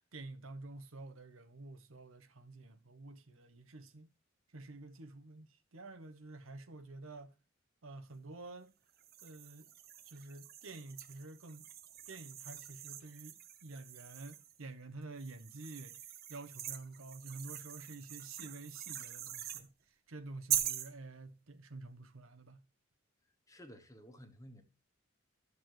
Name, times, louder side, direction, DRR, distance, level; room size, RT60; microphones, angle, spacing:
voice 1, 0.1-4.1 4.5-7.3 7.8-8.7 9.2-9.7 10.0-11.7 12.1-22.6, right 2 dB, 80° right, 1.0 m, -49 dB
sound 1, 9.0-14.6 15.2-19.7 20.5-20.9, right 11 dB, 50° right, 0.9 m, -42 dB
voice 2, 23.5-24.6, equal, 15° left, 1.3 m, -54 dB
12.0 x 6.9 x 3.1 m
head